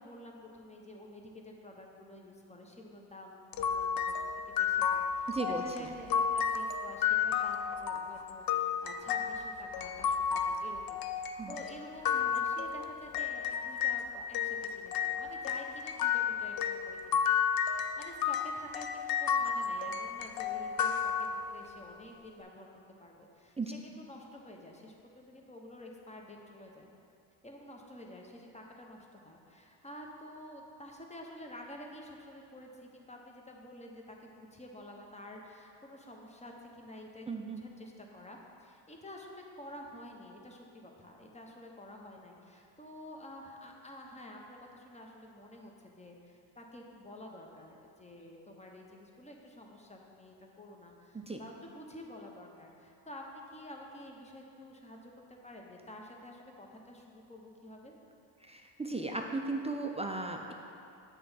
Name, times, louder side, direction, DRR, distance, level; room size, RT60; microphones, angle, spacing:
voice 1, 0.0-4.1 4.5-22.7 23.0-26.9 27.4-58.0, left 1 dB, 15° left, 0 dB, 0.8 m, -50 dB
sound 1, 3.5-14.0 14.3-21.7, left 7 dB, 50° left, 0.4 m, -32 dB
voice 2, 5.3-5.9 11.4-11.6 23.6-23.7 37.3-37.6 51.1-51.4 58.4-60.5, right 3 dB, 15° right, 2 dB, 0.3 m, -36 dB
7.5 x 3.5 x 5.6 m, 2.7 s
cardioid pair, 80°, 48 cm